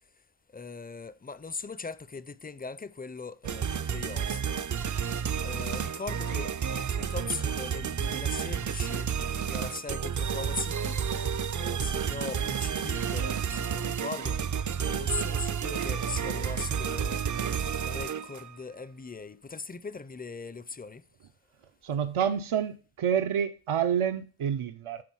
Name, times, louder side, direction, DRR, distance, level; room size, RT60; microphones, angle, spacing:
voice 1, 0.5-4.6 5.0-9.1 9.5-11.0 11.6-14.4 14.8-21.0, left 4 dB, 20° left, 0.5 m, -40 dB
sound 1, 3.4-18.5, right 7 dB, 40° right, 0.5 m, -31 dB
voice 2, 21.8-25.0, right 8 dB, 80° right, 0.7 m, -28 dB
9.6 x 3.8 x 6.2 m
wide cardioid pair, 75°, 49 cm